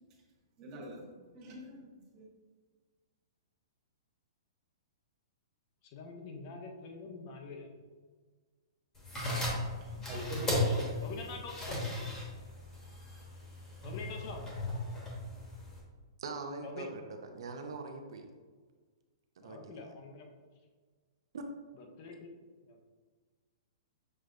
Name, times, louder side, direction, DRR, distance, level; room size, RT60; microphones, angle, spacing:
voice 1, 0.6-1.1 1.3-2.3 9.8-11.1, right 1 dB, 25° right, -1 dB, 0.8 m, -44 dB
voice 2, 5.8-7.7 11.0-12.1 13.8-14.6 16.6-16.9 19.4-20.3 21.8-22.8, left 4 dB, 30° left, 3 dB, 0.5 m, -46 dB
sound 1, 9.0-15.8, left 1 dB, 10° left, 1.0 m, -36 dB
voice 3, 16.2-17.0 17.3-18.3 19.4-19.7 21.3-21.4, right 3 dB, 65° right, 4 dB, 0.6 m, -42 dB
6.3 x 3.2 x 2.5 m, 1.5 s
hypercardioid pair, 170°, 3 cm